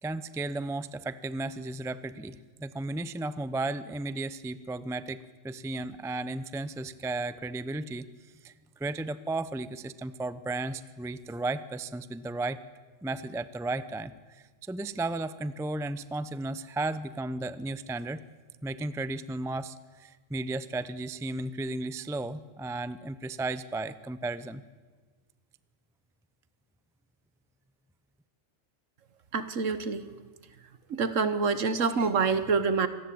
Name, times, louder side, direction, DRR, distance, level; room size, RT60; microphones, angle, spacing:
voice 1, 0.0-8.1 8.4-12.6 13.0-18.2 18.6-24.6, right 2 dB, 5° right, 14 dB, 0.4 m, -34 dB
voice 2, 29.3-30.1 30.9-32.9, right 4 dB, 65° right, 12 dB, 1.6 m, -26 dB
25.5 x 18.5 x 8.6 m, 1.4 s
omnidirectional pair, 1.5 m